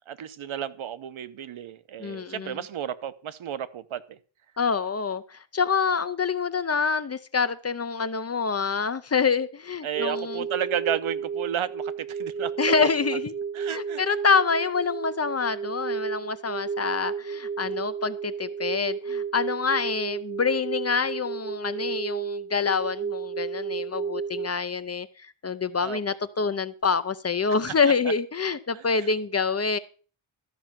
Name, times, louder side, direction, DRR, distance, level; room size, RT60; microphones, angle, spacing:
voice 1, 0.1-4.2 9.8-12.9 13.5-14.0 25.8-26.0 28.7-29.1, right 9 dB, 75° right, 0.9 m, -32 dB
voice 2, 2.0-2.6 4.6-10.4 12.6-13.3 13.7-25.1 25.4-29.8, left 5 dB, 30° left, 0.6 m, -26 dB
sound 1, 9.9-24.5, right 6 dB, 30° right, 0.5 m, -32 dB
13.0 x 5.4 x 7.3 m
wide cardioid pair, 160°, 49 cm